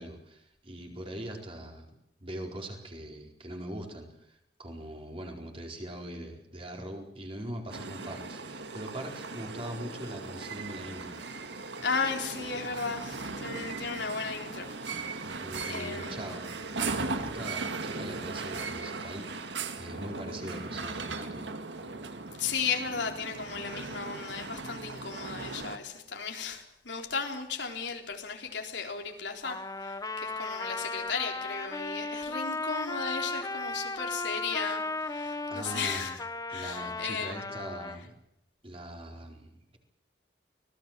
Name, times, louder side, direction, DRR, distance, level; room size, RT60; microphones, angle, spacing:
voice 1, 0.0-1.9 2.2-11.2 15.2-16.5 16.8-21.5 35.5-36.1 36.5-38.1 38.6-39.8, right 1 dB, 30° right, 1 dB, 4.6 m, -42 dB
sound 1, 7.7-25.8, right 3 dB, 80° right, 1.9 m, -38 dB
voice 2, 11.8-14.7 15.3-15.4 15.7-16.3 22.4-36.2 36.5-37.4, left 5 dB, 80° left, 2 dB, 3.9 m, -35 dB
Trumpet, 29.4-38.0, left 3 dB, 20° left, 1.1 m, -35 dB
25.0 x 18.5 x 7.5 m, 0.82 s
head